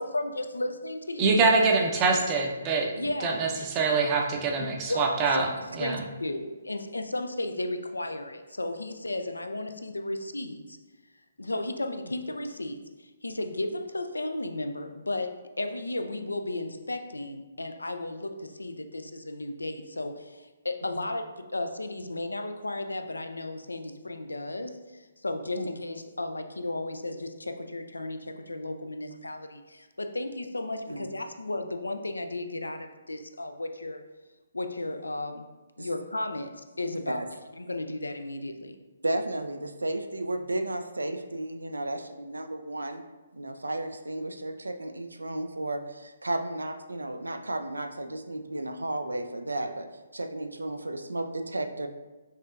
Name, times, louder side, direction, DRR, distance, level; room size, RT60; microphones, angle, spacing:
voice 1, 0.0-1.5 3.0-3.7 4.9-10.8 11.4-34.0 34.5-35.5 35.8-37.2 37.6-38.8, left 2 dB, 80° left, 7 dB, 0.4 m, -34 dB
voice 2, 1.2-2.9 3.2-5.5 5.8-6.0, right 4 dB, 25° right, 1 dB, 0.6 m, -24 dB
voice 3, 39.0-43.0 43.3-49.9 50.1-51.9, right 1 dB, 80° right, 7 dB, 0.3 m, -33 dB
5.4 x 2.7 x 2.4 m, 1.2 s
figure-of-eight pair, 135°, 0 cm